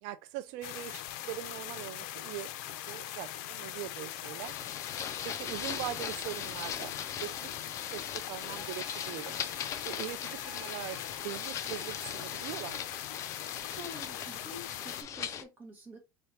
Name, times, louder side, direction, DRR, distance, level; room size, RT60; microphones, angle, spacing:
voice 1, 0.0-4.6 5.2-7.0 7.2-7.5 7.9-9.4 9.8-13.0, right 14 dB, 75° right, 0.4 m, -41 dB
sound 1, 0.6-15.0, left 13 dB, 85° left, 0.5 m, -41 dB
sound 2, 4.4-15.4, left 8 dB, 35° left, 0.5 m, -40 dB
Trumpet, 8.5-12.9, left 1 dB, 10° left, 1.3 m, -53 dB
voice 2, 13.7-16.0, equal, 20° right, 1.7 m, -47 dB
3.9 x 3.4 x 2.8 m
cardioid pair, 150°, 9 cm